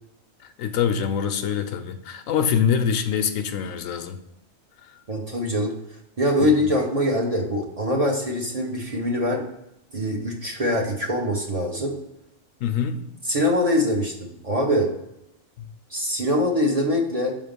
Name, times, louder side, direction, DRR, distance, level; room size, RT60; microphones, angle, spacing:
voice 1, 0.4-4.2 4.8-5.0 6.4-6.7 12.6-13.0 15.6-15.7, left 7 dB, 80° left, 9 dB, 1.0 m, -25 dB
voice 2, 5.1-5.8 6.2-9.4 9.9-11.9 13.3-14.9 15.9-17.3, left 1 dB, 30° right, -1 dB, 0.8 m, -23 dB
5.8 x 3.6 x 5.1 m, 0.86 s
omnidirectional pair, 1.4 m